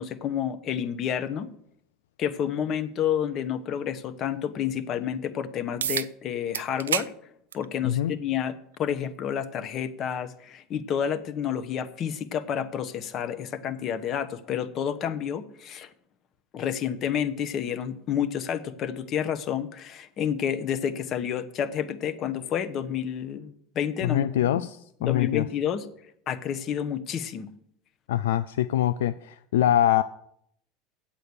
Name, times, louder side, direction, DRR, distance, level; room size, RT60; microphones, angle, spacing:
voice 1, 0.0-1.5 2.2-7.1 7.5-15.9 16.5-24.3 25.0-25.8 26.3-27.5, left 8 dB, 45° left, 11 dB, 1.0 m, -30 dB
sound 1, 5.8-6.1 6.5-7.1 7.5-7.7 8.7-8.8 13.8-13.9, right 9 dB, 85° right, 0.4 m, -28 dB
voice 2, 7.8-8.2 24.0-25.5 28.1-30.0, left 12 dB, 75° left, 14 dB, 0.4 m, -24 dB
8.3 x 8.0 x 6.6 m, 0.70 s
hypercardioid pair, 85°, 0 cm